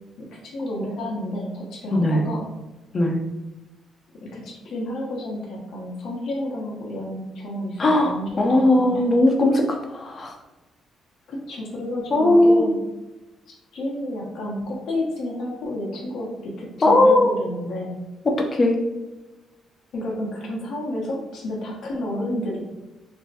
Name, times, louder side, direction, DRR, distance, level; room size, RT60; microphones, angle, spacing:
voice 1, 0.2-2.4 4.2-9.0 11.3-12.8 13.5-17.9 19.9-22.6, left 1 dB, 75° left, -3 dB, 1.0 m, -31 dB
voice 2, 1.9-2.3 2.9-3.2 7.8-10.4 12.1-12.7 16.8-17.3 18.2-18.8, left 1 dB, 35° left, 2 dB, 0.7 m, -18 dB
3.4 x 2.1 x 4.1 m, 1.1 s
cardioid pair, 90°, 0 cm